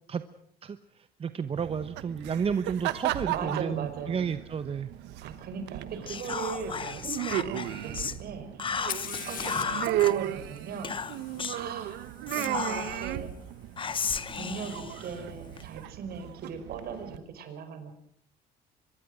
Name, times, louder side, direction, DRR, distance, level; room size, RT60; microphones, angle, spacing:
voice 1, 0.6-4.9, right 6 dB, 35° right, 11 dB, 1.0 m, -32 dB
sound 1, 1.6-17.2, right 14 dB, 90° right, 1.2 m, -35 dB
voice 2, 3.3-4.3 5.2-8.9 9.2-13.3 14.3-17.9, right 6 dB, 65° right, 8 dB, 4.9 m, -39 dB
Whispering, 6.1-8.2 8.6-10.1 10.8-11.7 12.3-13.2 13.8-15.6, left 6 dB, 30° left, 1.1 m, -34 dB
Fire, 8.7-12.5 14.4-14.5 15.3-15.7, left 10 dB, 55° left, 1.6 m, -42 dB
24.5 x 22.0 x 6.3 m, 0.66 s
cardioid pair, 110°, 17 cm